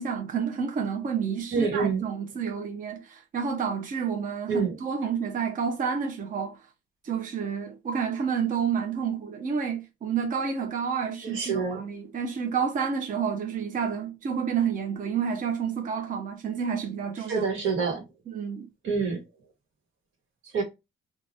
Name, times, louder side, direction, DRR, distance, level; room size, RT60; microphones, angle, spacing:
voice 1, 0.0-6.6 7.0-17.5 18.3-18.7, right 6 dB, 40° right, 0.5 m, -29 dB
voice 2, 1.5-2.0 4.5-4.7 11.2-11.8 17.3-18.0 18.8-19.2 20.5-20.6, right 5 dB, 80° right, 1.2 m, -26 dB
2.9 x 2.3 x 2.5 m
cardioid pair, 90°, 20 cm